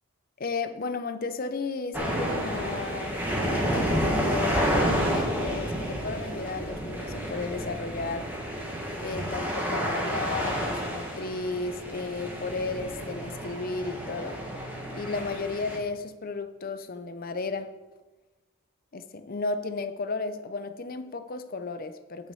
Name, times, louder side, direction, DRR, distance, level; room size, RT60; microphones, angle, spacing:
voice 1, 0.4-8.3 9.0-14.4 14.9-17.7 18.9-22.3, left 3 dB, 40° left, 10 dB, 0.6 m, -34 dB
sound 1, 1.9-15.8, equal, 10° right, 1.5 m, -30 dB
10.5 x 6.4 x 5.5 m, 1.2 s
head